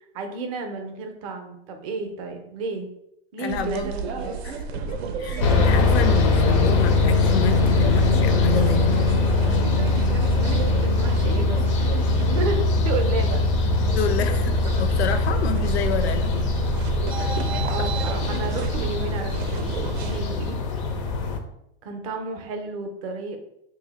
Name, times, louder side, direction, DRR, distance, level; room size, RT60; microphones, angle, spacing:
voice 1, 0.1-2.9 3.3-4.4 4.7-4.8 10.4-11.9 12.3-13.4 17.7-20.6 21.8-23.4, right 3 dB, 35° right, 5 dB, 0.5 m, -32 dB
voice 2, 3.4-3.9 4.4-9.1 13.9-16.5 17.8-17.9, left 7 dB, 90° left, 10 dB, 0.6 m, -29 dB
sound 1, 3.5-20.2, right 5 dB, 90° right, 0.6 m, -30 dB
sound 2, 5.4-21.4, left 3 dB, 30° left, 0.4 m, -22 dB
2.8 x 2.7 x 3.9 m, 0.79 s
supercardioid pair, 160°, 31 cm